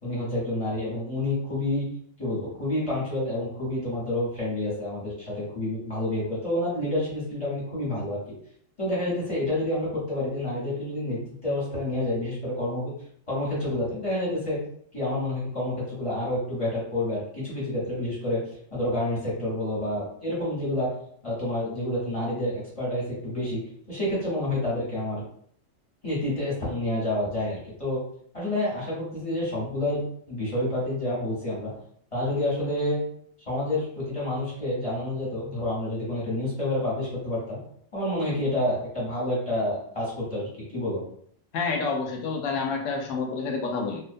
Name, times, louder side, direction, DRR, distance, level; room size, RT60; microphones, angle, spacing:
voice 1, 0.0-1.8 2.2-8.2 8.8-12.9 13.3-14.6 14.9-18.4 18.7-20.9 21.2-23.6 23.9-25.2 26.0-28.0 28.3-31.7 32.1-33.0 33.5-37.6 37.9-41.0, left 1 dB, 25° left, -8 dB, 1.0 m, -28 dB
voice 2, 41.5-44.0, left 4 dB, 75° left, 2 dB, 0.9 m, -28 dB
2.3 x 2.2 x 2.5 m, 0.64 s
omnidirectional pair, 1.4 m